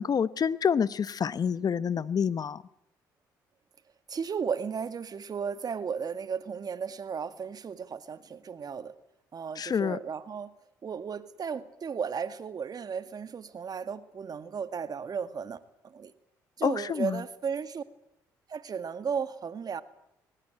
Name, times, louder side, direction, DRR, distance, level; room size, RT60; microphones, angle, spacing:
voice 1, 0.0-2.6 9.5-10.0 16.6-17.2, left 7 dB, 45° left, 18 dB, 0.9 m, -27 dB
voice 2, 4.1-8.9 9.3-10.5 10.8-16.1 16.6-17.8 18.5-19.8, right 6 dB, 45° right, 12 dB, 1.9 m, -35 dB
22.5 x 20.0 x 9.1 m, 0.79 s
supercardioid pair, 60°, 9 cm